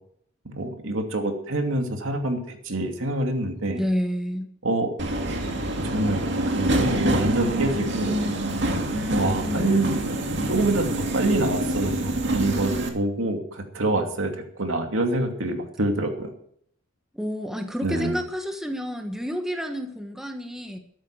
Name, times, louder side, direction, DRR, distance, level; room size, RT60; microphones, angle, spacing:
voice 1, 0.4-3.8 4.6-4.9 5.8-8.2 9.1-9.9 10.5-16.3 17.8-18.2, right 2 dB, 75° right, 4 dB, 2.6 m, -26 dB
voice 2, 3.7-4.5 8.9-9.8 17.1-20.8, equal, ahead, 4 dB, 1.4 m, -30 dB
Subway metro underground, 5.0-12.9, right 1 dB, 60° right, 2.4 m, -26 dB
13.0 x 13.0 x 4.8 m, 0.65 s
head